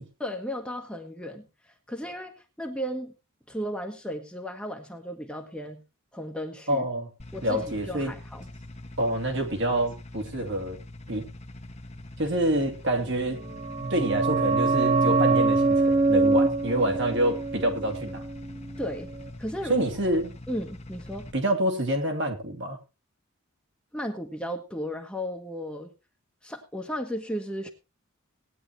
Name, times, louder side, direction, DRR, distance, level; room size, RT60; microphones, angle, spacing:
voice 1, 0.2-1.5 1.9-3.1 3.5-5.8 6.1-6.9 7.3-8.5 18.8-19.1 19.4-20.1 20.5-21.3 23.9-25.9 26.4-27.7, equal, 5° left, 3 dB, 1.2 m, -34 dB
voice 2, 6.7-7.1 7.4-8.1 9.0-10.8 11.1-11.3 12.2-13.4 13.9-18.2 19.7-20.3 21.3-22.8, right 1 dB, 55° right, 3 dB, 2.7 m, -27 dB
sound 1, 7.2-21.3, left 1 dB, 30° left, 1.2 m, -43 dB
sound 2, 13.4-18.8 19.1-19.2, right 3 dB, 20° right, 1.5 m, -24 dB
18.0 x 9.8 x 3.1 m, 0.28 s
head